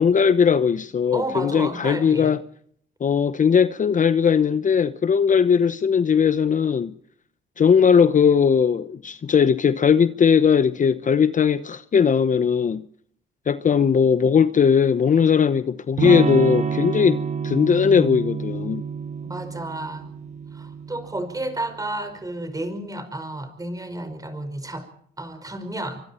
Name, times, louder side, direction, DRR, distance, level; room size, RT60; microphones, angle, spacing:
voice 1, 0.0-2.4 3.0-6.9 7.6-12.8 13.5-18.8, left 7 dB, 40° left, 0.9 m, -19 dB
voice 2, 1.1-2.3 19.2-20.0 20.5-24.9 25.2-26.0, right 1 dB, 15° right, 5.3 m, -31 dB
Electric guitar / Strum, 16.0-21.7, right 6 dB, 35° right, 1.1 m, -28 dB
26.0 x 24.5 x 4.4 m
cardioid pair, 90°, 20 cm